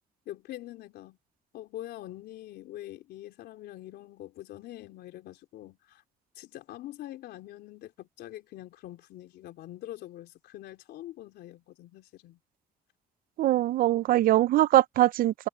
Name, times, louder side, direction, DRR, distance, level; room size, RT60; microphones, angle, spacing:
voice 1, 0.3-1.2 1.5-6.0 6.4-12.4, left 14 dB, 75° left, 3.6 m, -44 dB
voice 2, 13.4-15.5, right 14 dB, 60° right, 0.5 m, -22 dB
cardioid pair, 110°, 17 cm